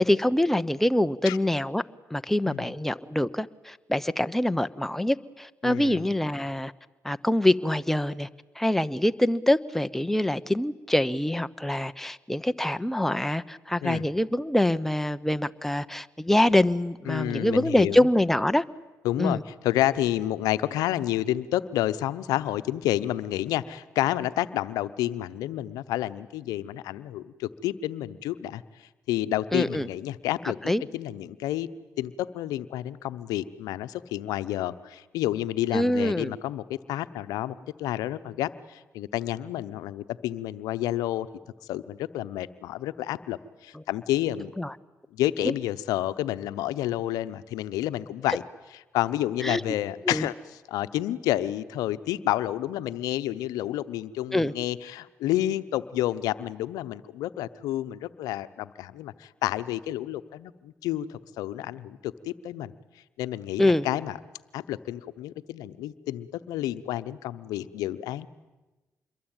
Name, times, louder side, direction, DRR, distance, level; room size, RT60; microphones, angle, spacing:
voice 1, 0.0-1.8 2.1-6.7 7.0-8.3 8.6-18.6 19.2-19.4 29.5-29.9 30.7-30.8 35.7-36.3 44.6-44.7 45.4-45.5 49.4-49.6 50.1-50.3 54.3-54.5 63.6-63.9, left 1 dB, 5° left, 11 dB, 1.0 m, -24 dB
voice 2, 5.6-6.0 13.8-14.1 17.1-18.0 19.0-28.6 29.1-31.7 32.0-41.3 41.6-44.5 45.1-48.4 48.9-62.7 63.2-64.2 64.5-68.3, left 14 dB, 90° left, 13 dB, 0.9 m, -30 dB
26.5 x 22.5 x 9.0 m, 1.1 s
supercardioid pair, 55°, 6 cm